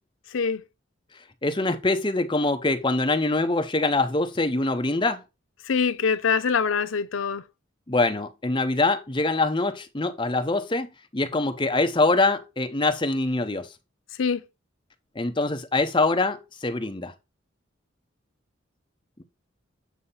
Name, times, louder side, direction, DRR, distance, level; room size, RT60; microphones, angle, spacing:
voice 1, 0.3-0.6 5.6-7.4 14.2-14.4, left 5 dB, 85° left, 0.6 m, -24 dB
voice 2, 1.4-5.2 7.9-13.7 15.2-17.1, left 2 dB, 25° left, 0.7 m, -24 dB
8.3 x 2.8 x 5.5 m
head